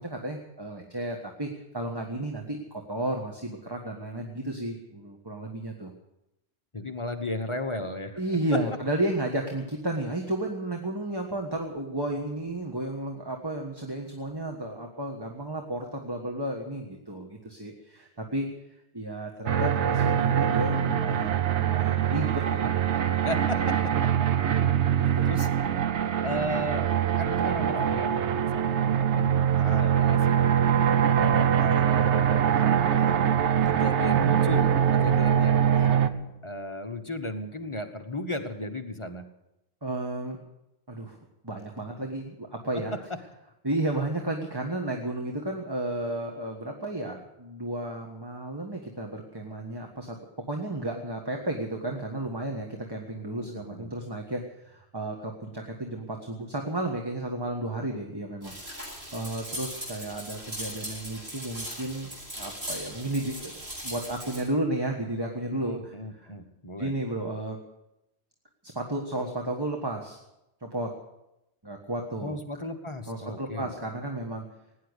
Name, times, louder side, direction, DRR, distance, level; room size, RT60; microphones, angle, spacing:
voice 1, 0.0-5.9 8.2-18.5 18.9-22.8 24.9-25.3 29.8-29.9 39.8-40.4 40.9-41.2 41.4-42.9 43.6-58.9 59.1-62.1 62.3-66.3 66.8-67.6 68.7-70.2 70.6-70.9 71.6-72.3 73.1-74.5, right 1 dB, 20° right, 2 dB, 1.5 m, -33 dB
voice 2, 6.7-8.2 8.5-8.6 23.2-24.1 24.9-25.5 26.2-26.9 27.2-30.4 31.1-33.3 33.6-39.3 42.7-43.2 53.3-53.9 65.5-66.9 72.2-73.7, left 1 dB, 25° left, 5 dB, 1.1 m, -35 dB
sound 1, 19.5-36.1, right 9 dB, 80° right, 1.1 m, -23 dB
sound 2, 58.4-64.4, equal, 65° right, 8.5 m, -39 dB
17.0 x 10.0 x 8.1 m, 0.91 s
omnidirectional pair, 1.1 m